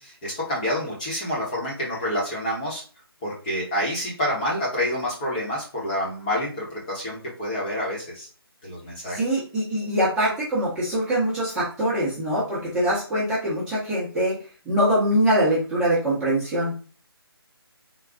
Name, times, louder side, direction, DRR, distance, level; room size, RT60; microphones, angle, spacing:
voice 1, 0.0-2.8 3.2-8.3 8.6-9.4, equal, 20° left, -6 dB, 1.0 m, -28 dB
voice 2, 9.2-14.3 14.7-16.7, right 1 dB, 5° right, -11 dB, 1.0 m, -23 dB
3.9 x 2.3 x 3.5 m, 0.38 s
figure-of-eight pair, 165°, 13 cm